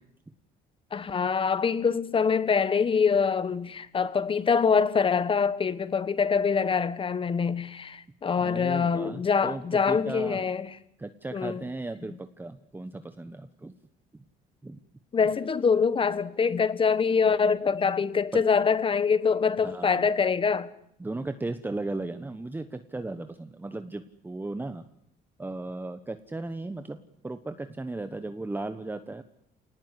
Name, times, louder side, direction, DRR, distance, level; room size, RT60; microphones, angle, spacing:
voice 1, 0.9-10.7 11.3-11.6 15.1-20.7, left 5 dB, 30° left, 1.5 m, -24 dB
voice 2, 8.4-10.5 11.0-13.7 14.1-14.2 14.6-14.8 18.3-18.5 19.6-20.1 21.0-24.8 25.4-27.0 27.2-29.2, right 2 dB, 10° right, 1.2 m, -36 dB
27.5 x 19.0 x 9.8 m
cardioid pair, 110°, 17 cm